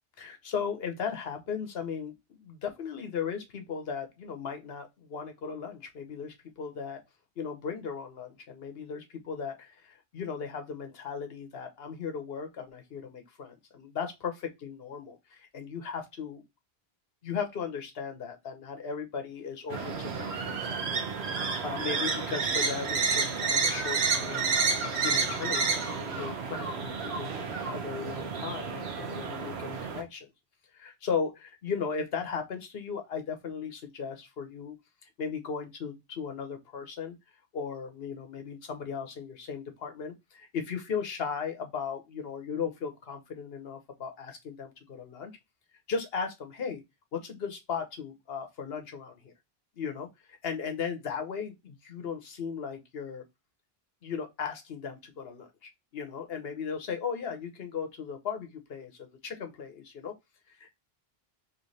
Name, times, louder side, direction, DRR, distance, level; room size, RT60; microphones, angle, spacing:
voice 1, 0.2-7.0 7.4-16.4 17.2-21.1 21.3-24.5 25.0-27.4 27.7-30.3 30.7-34.7 35.2-37.1 37.5-45.3 45.9-46.8 47.1-49.3 49.8-53.2 54.0-60.1 60.5-60.7, left 6 dB, 70° left, 1.1 m, -37 dB
sound 1, 19.7-20.4 21.3-27.9, right 1 dB, 60° right, 1.3 m, -41 dB
sound 2, 19.7-30.0, right 5 dB, 80° right, 1.1 m, -30 dB
3.2 x 3.1 x 4.0 m
omnidirectional pair, 1.1 m